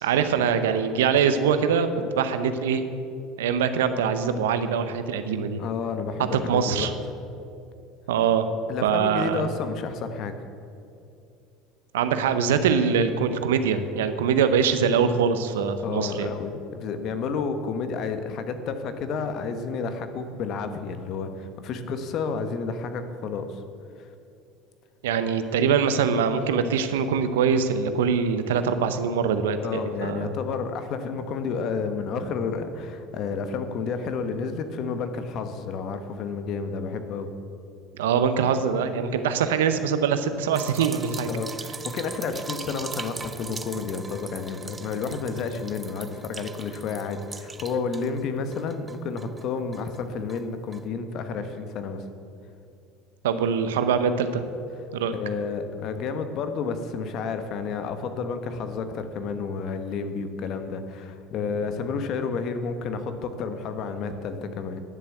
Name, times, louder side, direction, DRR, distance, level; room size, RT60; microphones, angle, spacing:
voice 1, 0.0-2.8 3.4-5.6 6.3-6.9 8.1-8.5 8.8-9.5 11.9-16.3 25.0-30.4 37.9-41.3 53.2-54.4 54.9-55.2, right 6 dB, 85° right, 10 dB, 0.7 m, -23 dB
voice 2, 5.6-6.9 8.7-10.3 15.8-23.6 24.0-24.1 29.6-37.3 41.3-41.5 41.8-52.0 55.1-64.8, left 5 dB, 55° left, 9 dB, 1.1 m, -31 dB
sound 1, 40.5-48.2 48.5-50.0 50.3-50.4 50.7-50.8, right 4 dB, 25° right, 0.5 m, -40 dB
10.5 x 7.0 x 7.8 m, 2.6 s
hypercardioid pair, 85°, 0 cm